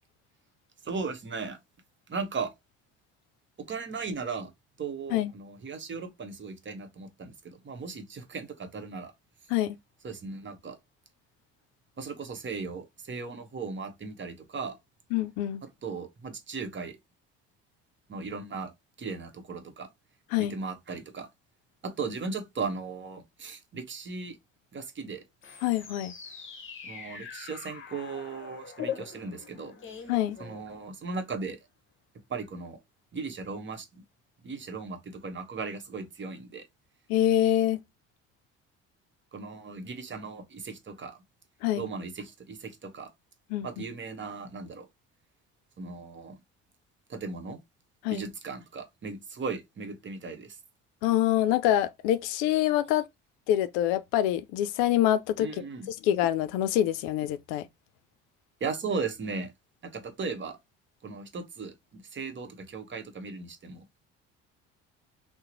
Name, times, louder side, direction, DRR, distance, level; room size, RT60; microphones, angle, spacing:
voice 1, 0.8-1.6 2.1-2.5 3.6-4.5 4.8-9.1 10.0-10.8 12.0-14.8 15.8-17.0 18.1-18.7 19.0-19.9 20.4-21.3 21.8-24.4 24.7-25.2 26.8-29.8 30.4-31.6 32.3-32.8 33.1-34.0 34.4-36.6 39.3-41.2 41.8-43.1 43.6-44.9 45.8-46.4 47.1-47.6 48.1-50.6 55.4-55.9 58.6-59.5 59.8-60.6 61.0-63.8, right 4 dB, 35° right, 0.9 m, -37 dB
voice 2, 15.1-15.6 20.3-20.6 25.6-26.1 30.1-30.4 37.1-37.8 41.6-41.9 43.5-43.7 48.0-48.2 51.0-53.1 53.5-55.5 56.0-57.7, left 12 dB, 75° left, 0.5 m, -25 dB
sound 1, 25.4-31.1, left 7 dB, 35° left, 0.9 m, -42 dB
2.8 x 2.1 x 3.8 m
hypercardioid pair, 65°, 35 cm